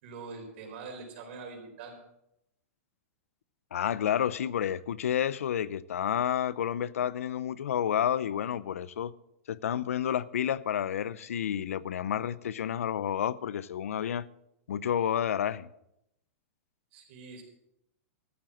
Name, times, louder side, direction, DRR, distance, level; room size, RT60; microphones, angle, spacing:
voice 1, 0.0-2.0 16.9-17.4, right 4 dB, 55° right, 4.5 m, -44 dB
voice 2, 3.7-9.1 9.5-14.3 14.7-15.7, left 9 dB, 90° left, 0.6 m, -30 dB
13.5 x 7.7 x 7.4 m
hypercardioid pair, 145°, 7 cm